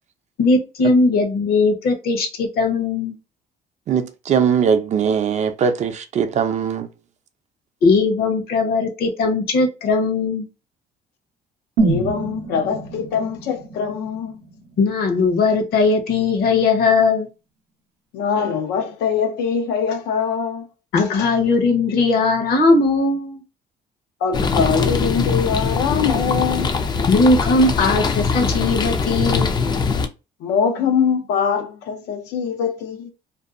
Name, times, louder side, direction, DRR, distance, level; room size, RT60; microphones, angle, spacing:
voice 1, 0.4-3.2 7.8-10.5 14.8-17.3 20.9-23.4 27.1-29.5, left 3 dB, 65° left, 0.9 m, -18 dB
voice 2, 3.9-6.9, right 7 dB, 45° right, 0.4 m, -20 dB
voice 3, 11.8-14.4 18.1-20.7 21.0-21.3 24.2-26.7 30.4-33.1, left 6 dB, 85° left, 0.5 m, -23 dB
sound 1, 11.8-15.7 16.0-16.1, right 3 dB, 85° right, 0.6 m, -26 dB
sound 2, 24.3-30.1, left 4 dB, 25° left, 0.3 m, -22 dB
2.6 x 2.3 x 2.4 m
cardioid pair, 110°, 17 cm